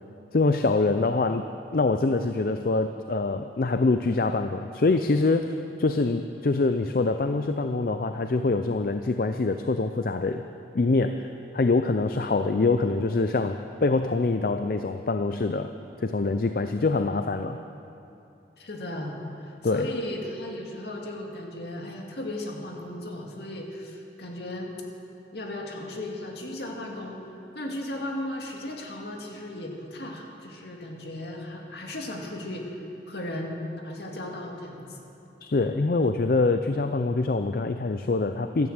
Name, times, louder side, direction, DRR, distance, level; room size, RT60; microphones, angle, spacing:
voice 1, 0.3-1.4 1.7-10.4 10.7-11.3 11.5-15.7 16.0-17.6 19.6-19.9 35.4-38.7, left 3 dB, 55° left, 8 dB, 0.5 m, -24 dB
voice 2, 18.6-24.7 25.3-27.2 27.5-33.6 33.8-35.0, left 1 dB, 70° left, 1 dB, 2.2 m, -36 dB
13.0 x 12.5 x 8.0 m, 2.9 s
head